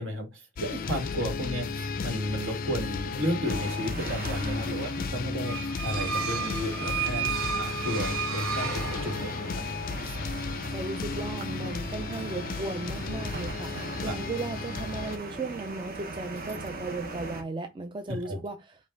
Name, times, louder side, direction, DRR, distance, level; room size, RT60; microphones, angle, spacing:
voice 1, 0.0-9.6 10.0-10.2 14.0-14.2 18.1-18.4, equal, 65° right, 1.5 m, -33 dB
sound 1, 0.5-15.2, left 4 dB, 45° left, 0.4 m, -34 dB
sound 2, 3.4-17.4, right 2 dB, 45° right, 0.9 m, -41 dB
sound 3, 5.4-9.6, right 6 dB, 80° right, 0.9 m, -32 dB
voice 2, 10.7-18.8, right 3 dB, 25° right, 0.4 m, -36 dB
5.2 x 2.3 x 3.8 m
head